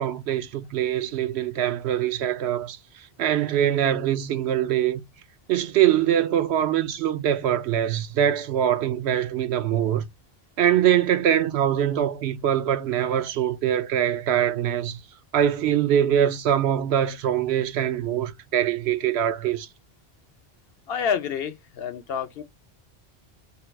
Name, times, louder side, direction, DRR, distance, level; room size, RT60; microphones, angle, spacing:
voice 1, 0.0-2.8 3.2-5.0 5.5-10.0 10.6-15.0 15.3-19.7, right 10 dB, 75° right, 0.9 m, -23 dB
voice 2, 20.9-22.4, left 7 dB, 65° left, 0.8 m, -28 dB
3.4 x 2.3 x 4.4 m
omnidirectional pair, 1.1 m